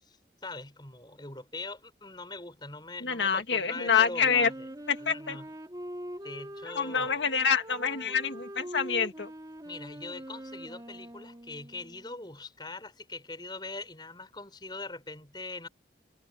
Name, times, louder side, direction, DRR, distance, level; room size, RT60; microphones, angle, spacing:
voice 1, 0.4-4.5 5.0-5.5 6.2-7.2 9.6-15.7, left 3 dB, 25° left, 5.6 m, -42 dB
voice 2, 3.0-4.5 4.9-5.4 6.6-9.3, left 6 dB, 85° left, 1.8 m, -27 dB
Wind instrument woodwind instrument, 3.6-12.2, equal, 20° right, 2.0 m, -43 dB
head